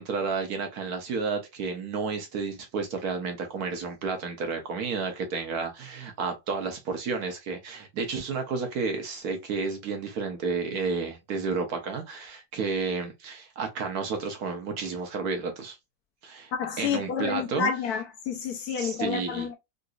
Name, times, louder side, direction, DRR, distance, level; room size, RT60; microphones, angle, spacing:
voice 1, 0.0-15.8 16.2-16.5 16.8-17.7 18.8-19.5, right 4 dB, 65° right, 1.1 m, -31 dB
voice 2, 16.6-19.6, left 7 dB, 70° left, 1.0 m, -30 dB
3.8 x 2.5 x 2.3 m
omnidirectional pair, 1.9 m